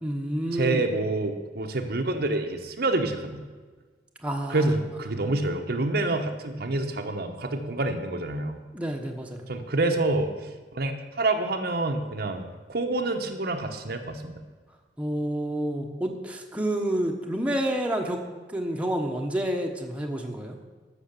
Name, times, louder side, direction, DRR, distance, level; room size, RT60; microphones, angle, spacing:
voice 1, 0.0-0.9 4.2-4.7 8.7-9.4 15.0-18.2 18.5-20.6, right 1 dB, 10° right, 1 dB, 1.2 m, -29 dB
voice 2, 0.5-3.5 4.5-8.6 9.5-10.3 10.7-10.9 11.2-14.4, right 2 dB, 60° right, 5 dB, 1.0 m, -27 dB
13.5 x 6.6 x 6.7 m, 1.4 s
head